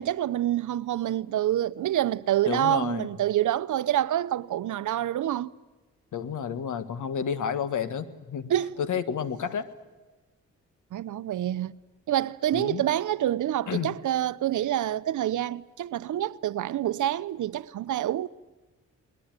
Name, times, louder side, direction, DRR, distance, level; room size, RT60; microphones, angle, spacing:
voice 1, 0.0-5.5 8.5-8.7 10.9-11.8 12.1-18.3, right 12 dB, 80° right, 0.7 m, -27 dB
voice 2, 2.5-3.1 6.1-8.5 8.8-9.7 12.5-12.8 13.7-13.9, left 7 dB, 75° left, 1.6 m, -30 dB
21.5 x 20.5 x 9.0 m
cardioid pair, 105°, 30 cm